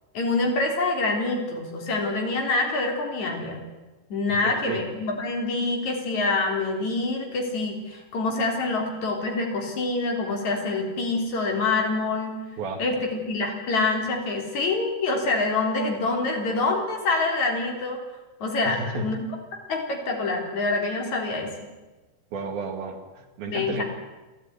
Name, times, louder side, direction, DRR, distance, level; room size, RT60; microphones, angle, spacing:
voice 1, 0.1-3.6 4.1-12.4 12.8-18.0 18.4-19.2 19.7-21.5 23.4-23.8, left 3 dB, 45° left, 2 dB, 4.8 m, -26 dB
voice 2, 4.4-4.9 12.6-12.8 18.6-19.1 22.3-23.8, right 3 dB, 65° right, 5 dB, 3.7 m, -32 dB
29.5 x 13.0 x 9.8 m, 1.2 s
omnidirectional pair, 4.9 m